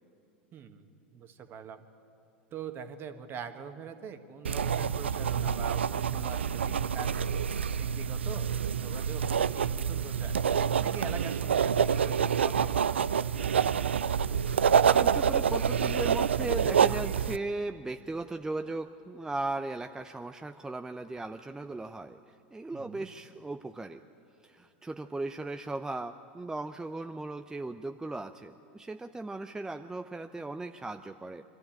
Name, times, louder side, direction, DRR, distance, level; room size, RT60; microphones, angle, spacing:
voice 1, 0.5-1.8 2.5-7.5 7.8-10.3 10.8-12.9 22.7-23.1, right 7 dB, 40° right, 7 dB, 1.6 m, -43 dB
sound 1, 4.4-17.4, right 7 dB, 85° right, 0.4 m, -27 dB
voice 2, 14.9-24.0 24.4-31.4, right 2 dB, 10° right, 7 dB, 0.6 m, -37 dB
24.5 x 13.0 x 8.7 m, 2.7 s
hypercardioid pair, 90°, 6 cm